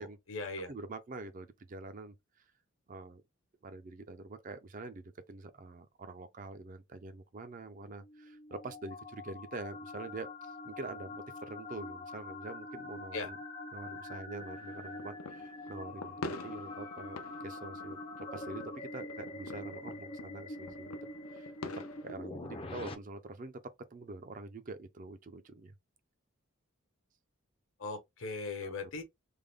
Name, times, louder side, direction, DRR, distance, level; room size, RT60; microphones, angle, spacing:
voice 1, 0.0-0.7 13.1-13.3 27.8-29.0, left 3 dB, 70° left, 1.1 m, -39 dB
voice 2, 0.7-2.5 2.9-3.2 3.6-13.4 13.7-20.9 21.3-21.5 22.0-23.6 23.9-25.7 28.6-28.7, right 3 dB, 40° right, 0.4 m, -45 dB
sound 1, 7.9-22.9, left 2 dB, 25° left, 0.4 m, -45 dB
sound 2, 14.4-22.1, left 3 dB, 90° left, 0.6 m, -47 dB
3.4 x 2.1 x 3.5 m
head